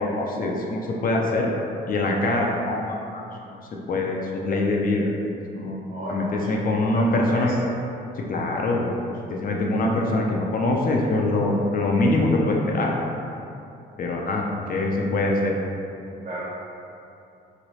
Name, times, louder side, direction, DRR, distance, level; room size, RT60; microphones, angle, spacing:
voice 1, 0.0-1.5 1.9-5.1 5.5-5.8 6.1-7.5 8.2-8.9 9.3-13.0 14.0-15.5, left 2 dB, 45° left, -1 dB, 0.4 m, -24 dB
voice 2, 5.9-7.7 16.2-16.4, equal, 35° right, -6 dB, 0.5 m, -35 dB
3.1 x 2.9 x 2.8 m, 2.7 s
cardioid pair, 90°, 20 cm